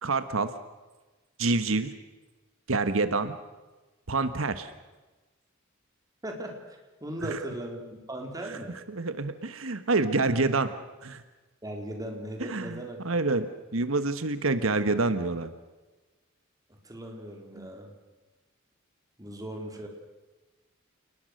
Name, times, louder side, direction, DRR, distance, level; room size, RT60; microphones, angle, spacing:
voice 1, 0.0-0.5 1.4-1.9 2.7-3.3 4.1-4.7 7.3-7.4 8.9-10.7 11.0-11.2 12.5-13.5 13.7-15.5 17.6-17.7, right 3 dB, 90° right, 11 dB, 1.3 m, -27 dB
voice 2, 6.2-8.8 11.6-13.0 16.7-17.9 19.2-19.9, right 1 dB, 20° right, 2 dB, 4.1 m, -38 dB
29.0 x 20.0 x 6.5 m, 1.2 s
head